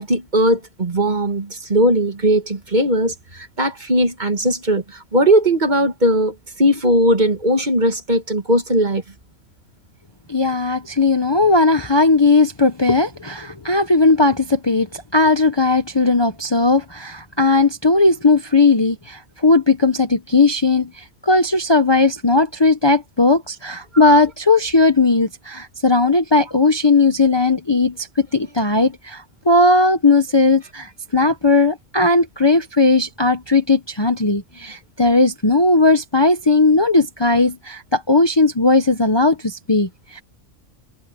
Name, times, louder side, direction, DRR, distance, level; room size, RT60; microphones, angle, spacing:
voice 1, 0.0-9.0, equal, 35° right, 1.9 m, -18 dB
voice 2, 10.3-40.2, left 3 dB, 20° left, 1.0 m, -17 dB
omnidirectional pair, 1.3 m